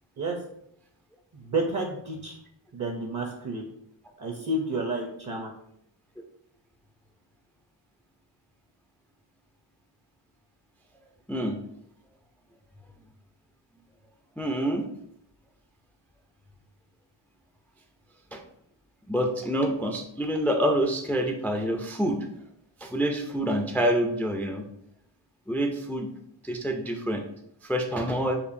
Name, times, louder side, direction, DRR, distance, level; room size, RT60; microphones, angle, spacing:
voice 1, 1.3-2.4 2.7-3.6 4.2-5.5, right 2 dB, 40° right, 1 dB, 0.6 m, -30 dB
voice 2, 14.4-14.9 18.3-18.4 19.1-22.3 22.8-24.6 25.5-26.1 26.4-27.2 27.6-28.3, equal, 5° left, 3 dB, 0.3 m, -27 dB
4.4 x 2.6 x 2.6 m, 0.74 s
wide cardioid pair, 85°, 47 cm